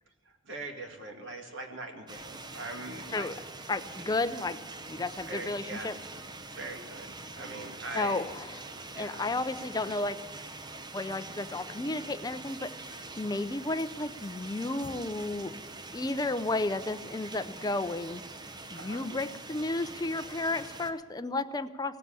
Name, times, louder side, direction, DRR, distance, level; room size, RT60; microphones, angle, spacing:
voice 1, 0.3-3.3 4.0-4.1 5.3-5.9 6.5-8.3 8.9-9.4 18.7-19.1, right 2 dB, 65° right, 3 dB, 2.1 m, -42 dB
sound 1, 2.1-20.9, right 3 dB, 20° right, 0.7 m, -44 dB
voice 2, 3.7-4.6 4.9-6.0 7.9-8.6 8.9-10.2 10.9-15.6 15.9-18.2 18.7-22.0, left 2 dB, 20° left, 11 dB, 0.5 m, -33 dB
17.5 x 7.8 x 10.0 m, 1.5 s
head